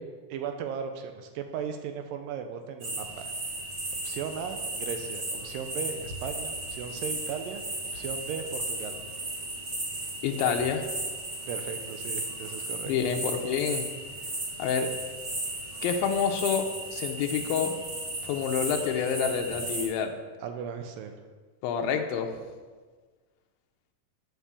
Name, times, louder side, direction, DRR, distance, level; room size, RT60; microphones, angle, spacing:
voice 1, 0.3-3.3 4.0-7.6 7.9-9.0 11.5-12.9 20.4-21.2, right 7 dB, 80° right, 6 dB, 2.2 m, -37 dB
sound 1, 2.8-19.8, right 1 dB, 30° right, 1.9 m, -35 dB
voice 2, 10.2-10.8 12.9-13.8 14.6-14.9 15.8-17.7 18.3-20.1 21.6-22.3, left 7 dB, 85° left, 4 dB, 2.5 m, -28 dB
8.1 x 6.1 x 6.9 m, 1.4 s
omnidirectional pair, 4.2 m